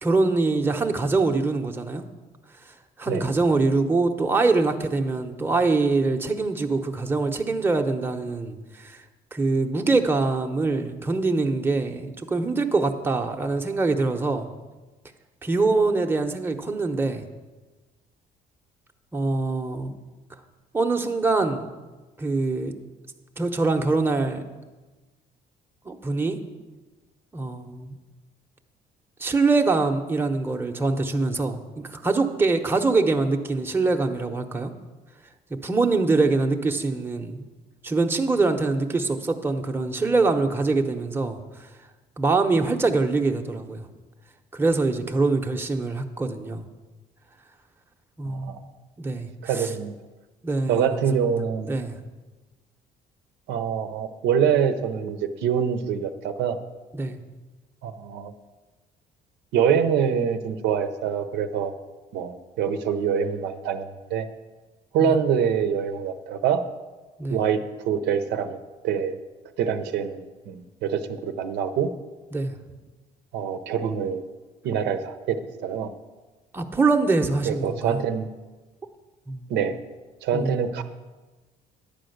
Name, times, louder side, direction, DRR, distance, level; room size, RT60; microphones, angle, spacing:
voice 1, 0.0-2.0 2.7-9.0 9.3-14.5 15.4-17.3 19.1-19.9 20.7-21.7 22.2-22.7 23.4-24.4 25.8-26.4 27.3-28.0 29.2-34.7 35.5-37.5 37.8-41.7 42.2-43.9 44.5-46.7 48.2-48.7 49.0-49.7 50.4-51.2 51.7-52.0 56.9-57.2 65.0-65.2 67.2-67.4 72.3-72.6 76.5-78.0 79.3-79.5 80.3-80.8, right 3 dB, 15° right, 4 dB, 0.8 m, -24 dB
voice 2, 48.3-48.6 49.4-49.9 50.7-51.7 53.5-56.6 57.8-58.3 59.5-61.7 62.1-64.3 64.9-66.6 67.3-68.6 68.8-69.2 69.6-71.9 73.3-74.2 74.6-75.9 77.5-78.3 79.5-79.8 80.2-80.8, right 7 dB, 85° right, 8 dB, 0.7 m, -25 dB
10.5 x 5.0 x 7.9 m, 1.2 s
cardioid pair, 110°, 17 cm